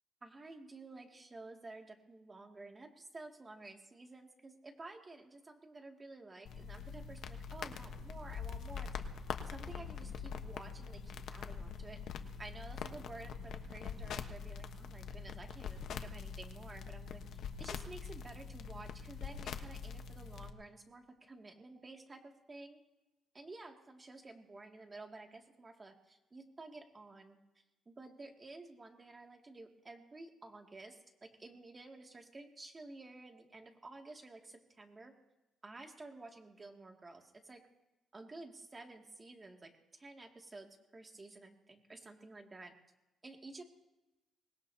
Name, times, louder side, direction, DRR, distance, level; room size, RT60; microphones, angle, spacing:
voice 1, 0.2-9.0 9.4-22.8 23.3-27.4 27.9-35.1 35.6-37.7 38.1-42.7 43.2-43.6, right 2 dB, 25° right, 2 dB, 2.3 m, -52 dB
sound 1, 6.5-20.5, left 6 dB, 70° left, 1.1 m, -44 dB
24.5 x 20.0 x 2.8 m, 1.0 s
cardioid pair, 90°, 0 cm